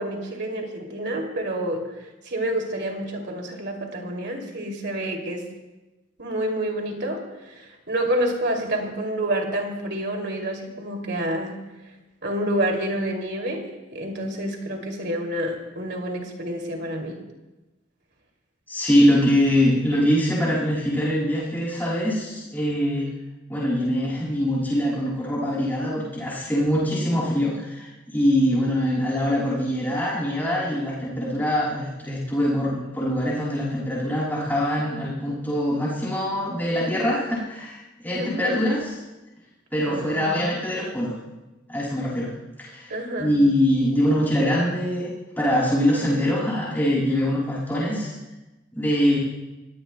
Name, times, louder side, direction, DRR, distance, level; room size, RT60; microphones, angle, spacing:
voice 1, 0.0-5.4 6.2-11.6 12.2-17.2 38.1-38.6 39.9-40.3 42.9-43.3, right 1 dB, 60° right, 2 dB, 2.7 m, -28 dB
voice 2, 18.7-23.1 23.5-38.9 39.7-41.1 41.7-42.3 42.6-42.9 43.2-45.1 45.4-48.1 48.7-49.2, equal, 10° left, -7 dB, 6.6 m, -23 dB
25.5 x 18.0 x 2.2 m, 1.1 s
head